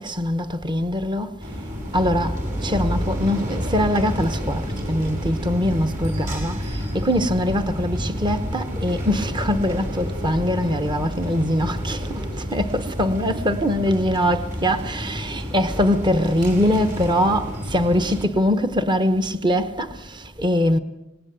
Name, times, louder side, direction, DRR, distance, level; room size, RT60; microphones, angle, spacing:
voice 1, 0.0-1.4 1.9-20.8, equal, 25° right, 1.0 m, -23 dB
sound 1, 1.4-18.3, equal, 45° right, 6.8 m, -29 dB
25.5 x 19.0 x 8.0 m
head